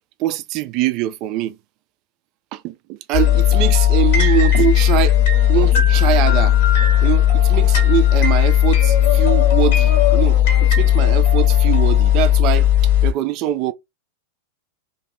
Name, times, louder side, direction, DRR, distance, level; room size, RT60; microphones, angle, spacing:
voice 1, 0.2-1.6 2.5-5.2 5.5-6.6 7.0-12.7 13.0-13.7, right 13 dB, 40° right, 0.3 m, -23 dB
sound 1, 3.1-13.1, left 11 dB, 55° left, 1.1 m, -15 dB
2.5 x 2.2 x 3.1 m
figure-of-eight pair, 90°, 0 cm